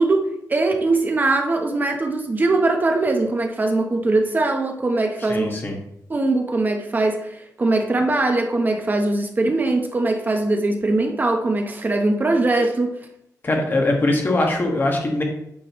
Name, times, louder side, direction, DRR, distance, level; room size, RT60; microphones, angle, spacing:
voice 1, 0.0-5.6 6.1-13.0, right 2 dB, 30° right, 5 dB, 0.8 m, -21 dB
voice 2, 5.3-5.7 13.4-15.2, left 2 dB, 35° left, 1 dB, 1.6 m, -21 dB
8.7 x 6.7 x 3.0 m, 0.78 s
wide cardioid pair, 155°, 7 cm